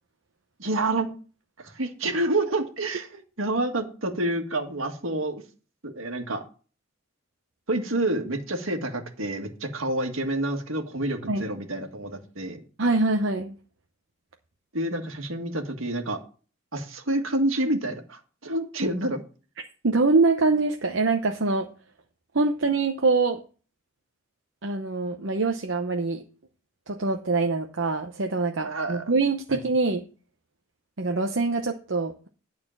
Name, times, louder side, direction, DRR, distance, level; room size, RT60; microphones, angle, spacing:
voice 1, 0.6-1.1 1.6-5.4 5.8-6.4 7.7-12.6 14.7-16.2 16.7-19.2 28.6-29.0, right 1 dB, 80° right, 4 dB, 1.8 m, -28 dB
voice 2, 12.8-13.5 19.8-21.7 22.3-23.4 24.6-26.2 26.9-30.0 31.0-32.3, right 3 dB, 65° right, 3 dB, 0.8 m, -24 dB
11.5 x 4.3 x 7.3 m, 0.37 s
head